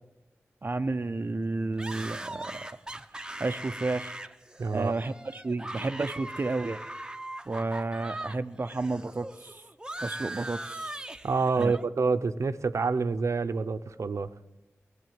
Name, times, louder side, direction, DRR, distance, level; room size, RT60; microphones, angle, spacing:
voice 1, 0.6-2.8 3.1-4.1 4.7-6.8 7.5-9.6 10.0-11.0 11.6-11.7, right 3 dB, 45° right, 9 dB, 0.6 m, -32 dB
sound 1, 1.8-8.4 8.6-11.8, right 1 dB, 15° right, 0.8 m, -40 dB
voice 2, 4.6-4.9 11.2-14.3, right 4 dB, 80° right, 11 dB, 0.7 m, -27 dB
18.5 x 8.2 x 9.3 m, 1.0 s
wide cardioid pair, 80°, 5 cm